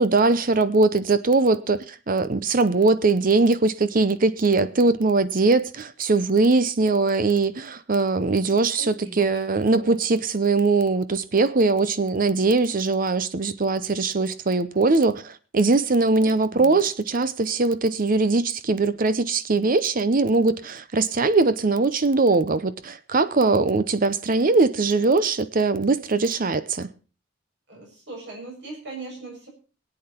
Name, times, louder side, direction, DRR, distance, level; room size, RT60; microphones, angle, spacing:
voice 1, 0.0-26.9, right 3 dB, 45° right, 0.7 m, -21 dB
voice 2, 8.5-10.0 16.2-16.8 27.7-29.5, right 2 dB, 60° right, 7.3 m, -40 dB
22.5 x 8.8 x 4.4 m
head